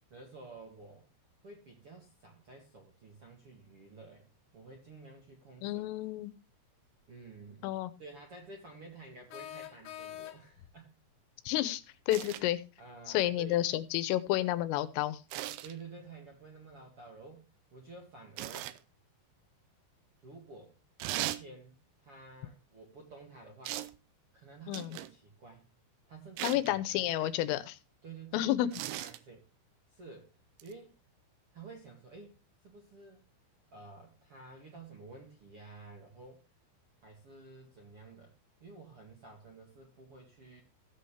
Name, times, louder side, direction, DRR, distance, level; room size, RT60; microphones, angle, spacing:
voice 1, 0.1-1.0 1.4-6.0 7.1-7.7 8.0-10.9 12.8-13.6 15.6-18.8 20.2-20.8 21.0-23.8 24.3-25.6 26.1-27.6 28.0-29.4 29.9-30.3 30.6-31.0 31.5-32.3 32.6-33.3 33.7-36.4 37.0-38.3 38.6-40.6, right 3 dB, 45° right, 1.9 m, -51 dB
voice 2, 5.6-6.3 7.6-7.9 11.5-12.6 13.1-15.2 24.7-25.0 26.4-27.8 28.3-28.7, left 14 dB, 90° left, 3.5 m, -31 dB
sound 1, 9.3-10.7, left 12 dB, 75° left, 2.5 m, -45 dB
sound 2, 12.1-12.4 15.3-15.7 18.4-18.8 21.0-21.4 23.7-24.0 24.7-25.1 26.4-26.7 28.7-29.2 30.6-30.7, right 14 dB, 80° right, 2.8 m, -38 dB
16.0 x 7.9 x 3.4 m
omnidirectional pair, 5.7 m